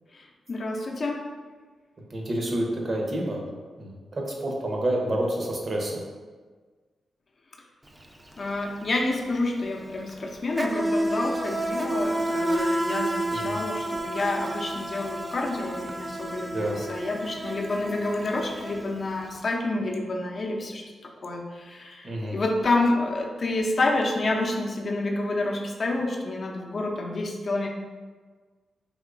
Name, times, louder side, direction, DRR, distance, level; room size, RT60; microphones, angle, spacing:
voice 1, 0.1-1.2 8.4-20.8 21.2-27.7, left 2 dB, 55° left, 0 dB, 0.5 m, -28 dB
voice 2, 2.1-3.4 3.8-6.0 13.3-13.6 16.5-16.8 22.0-22.4, right 1 dB, 50° right, 0 dB, 0.7 m, -28 dB
Insect, 7.9-8.1 8.3-19.3, right 1 dB, 20° right, 0.4 m, -30 dB
3.5 x 2.9 x 2.4 m, 1.4 s
supercardioid pair, 45°, 0 cm